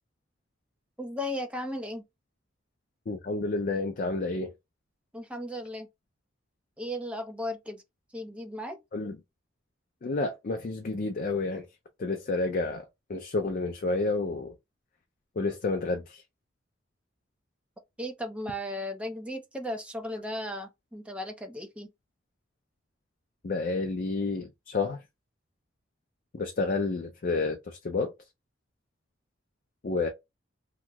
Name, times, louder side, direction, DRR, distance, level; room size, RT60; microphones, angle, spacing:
voice 1, 1.0-2.0 5.1-5.9 6.8-7.8 8.1-8.8 18.0-21.9, left 1 dB, 5° right, 0.5 m, -36 dB
voice 2, 3.1-4.5 8.9-9.2 10.0-11.7 12.0-14.5 15.4-16.2 23.4-25.0 26.3-28.1 29.8-30.1, left 3 dB, 45° left, 0.4 m, -30 dB
2.9 x 2.0 x 3.4 m
head